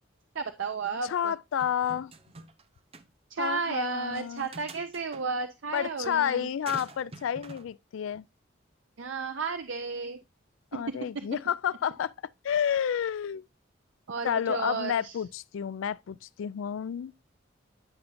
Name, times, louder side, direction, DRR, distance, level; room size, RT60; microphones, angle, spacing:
voice 1, 0.3-1.3 3.3-6.5 9.0-10.2 10.9-11.0 14.1-15.1, right 4 dB, 85° right, 0.6 m, -33 dB
voice 2, 1.0-2.1 3.4-4.5 5.7-8.2 10.7-12.1 12.4-13.4 14.2-17.1, left 8 dB, 90° left, 0.3 m, -30 dB
sound 1, 1.6-2.6 2.9-3.1 4.1-5.2 6.7-7.7, right 3 dB, 30° right, 0.6 m, -46 dB
10.0 x 5.6 x 2.6 m
head